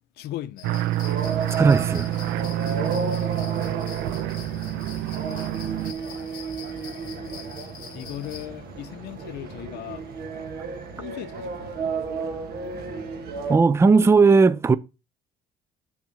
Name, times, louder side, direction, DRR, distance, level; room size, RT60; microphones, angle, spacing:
voice 1, 0.2-0.8 2.5-3.3 7.0-7.4 7.9-10.0 11.0-11.9, left 13 dB, 75° left, 0.7 m, -38 dB
sound 1, 0.6-8.5, left 7 dB, 55° left, 2.0 m, -44 dB
sound 2, 0.6-5.9, right 15 dB, 90° right, 0.5 m, -28 dB
sound 3, 1.0-13.6, right 5 dB, 70° right, 1.6 m, -33 dB
voice 2, 1.5-2.1 13.5-14.8, right 4 dB, 15° right, 0.4 m, -17 dB
7.2 x 3.6 x 6.2 m
cardioid pair, 110°, 17 cm